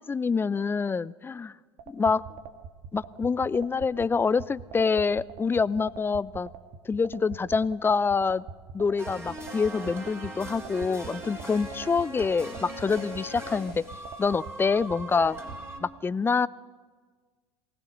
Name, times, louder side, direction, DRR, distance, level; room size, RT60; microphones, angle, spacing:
voice 1, 0.0-1.5 1.9-2.2 2.9-6.5 6.9-8.4 8.7-13.8 14.2-15.4 15.8-16.5, left 5 dB, 15° left, 19 dB, 0.5 m, -26 dB
sound 1, 1.8-15.6, right 6 dB, 50° right, 2.0 m, -42 dB
sound 2, 9.0-15.8, right 1 dB, 15° right, 4.6 m, -40 dB
24.0 x 18.0 x 6.6 m, 1.5 s
hypercardioid pair, 85°, 14 cm